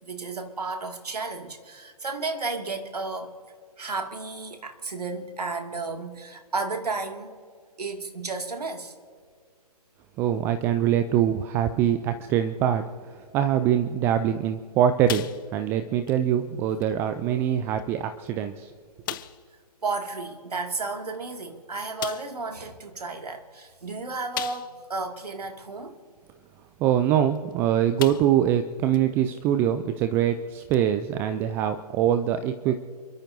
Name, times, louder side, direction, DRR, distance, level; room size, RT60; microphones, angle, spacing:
voice 1, 0.0-3.3 3.8-7.4 7.8-8.9 19.8-26.0, right 3 dB, 75° right, 2.2 m, -33 dB
voice 2, 10.2-18.7 26.8-32.8, right 10 dB, 10° right, 0.3 m, -24 dB
sound 1, 15.1-15.8 16.1-16.2 16.8-16.9 17.8-17.9 18.3-18.4 19.0-19.5 21.1-21.2 22.0-22.4 24.3-24.9 25.4-25.5 27.3-27.5 28.0-28.5 28.9-29.0 30.7-30.8, left 13 dB, 30° left, 0.7 m, -36 dB
29.0 x 13.0 x 2.7 m
figure-of-eight pair, 135°, 20 cm